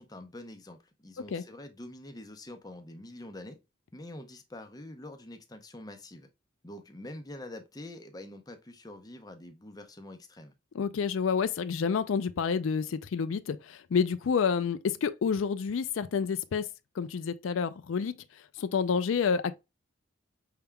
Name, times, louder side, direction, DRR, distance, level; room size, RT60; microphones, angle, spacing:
voice 1, 0.0-3.6 3.9-6.3 6.6-10.5, left 1 dB, 20° left, 0.6 m, -45 dB
voice 2, 10.7-16.7 17.0-18.2 18.6-19.6, left 6 dB, 85° left, 0.4 m, -29 dB
5.6 x 3.5 x 2.2 m
head